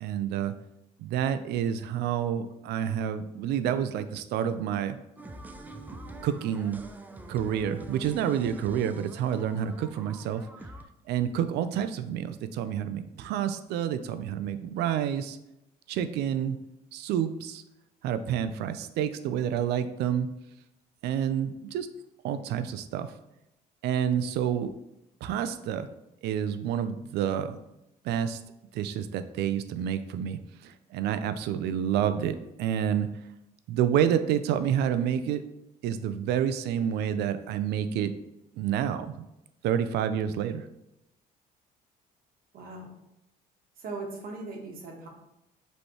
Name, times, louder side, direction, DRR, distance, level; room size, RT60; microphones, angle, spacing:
voice 1, 0.0-0.5 1.0-5.0 6.2-6.8 7.3-10.5 11.1-15.4 15.9-16.6 16.9-17.6 18.0-20.3 21.0-21.9 22.2-23.1 23.8-24.7 25.2-25.9 26.2-27.6 28.0-28.4 28.7-33.1 33.7-35.4 35.8-38.1 38.6-39.1 39.6-40.6, right 9 dB, 80° right, 12 dB, 0.4 m, -29 dB
sound 1, 5.2-10.8, right 2 dB, 10° right, 0.4 m, -45 dB
voice 2, 42.5-42.9 43.8-45.1, right 3 dB, 60° right, 1 dB, 1.1 m, -39 dB
5.3 x 3.2 x 3.0 m, 0.88 s
cardioid pair, 110°, 17 cm